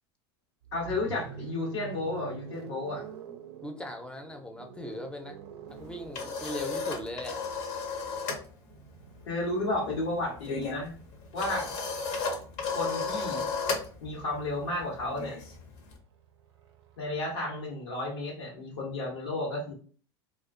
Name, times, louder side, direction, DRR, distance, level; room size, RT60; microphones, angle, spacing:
sound 1, 0.6-12.6 13.8-17.4, right 7 dB, 80° right, 0.4 m, -48 dB
voice 1, 0.7-3.0 9.3-10.9 11.3-11.8 12.7-13.5 14.0-15.4 17.0-19.7, left 2 dB, 80° left, 0.9 m, -32 dB
voice 2, 3.6-5.3 5.6-7.4, left 1 dB, 5° left, 0.5 m, -39 dB
sound 2, 5.8-8.5 8.7-9.0 9.3-16.0, left 4 dB, 55° left, 0.7 m, -34 dB
2.3 x 2.1 x 2.5 m
hypercardioid pair, 95°, 14 cm